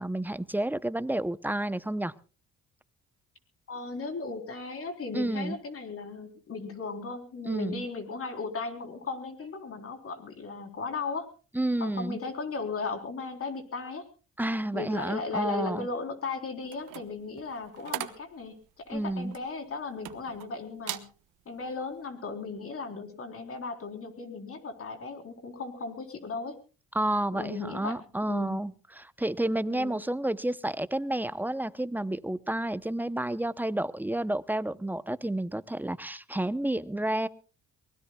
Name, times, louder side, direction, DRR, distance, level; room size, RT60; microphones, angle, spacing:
voice 1, 0.0-2.1 5.1-5.6 7.5-7.8 11.5-12.2 14.4-15.9 18.9-19.3 26.9-37.3, right 1 dB, 5° right, 15 dB, 0.7 m, -30 dB
voice 2, 3.7-11.3 11.8-14.0 14.7-21.0 21.5-26.6 27.3-28.0 28.3-28.5 29.7-30.0, left 4 dB, 50° left, 6 dB, 3.9 m, -36 dB
sound 1, 16.6-20.5 20.8-21.1 21.6-21.8, right 14 dB, 85° right, 1.1 m, -40 dB
24.0 x 19.5 x 2.3 m, 0.35 s
cardioid pair, 90°, 30 cm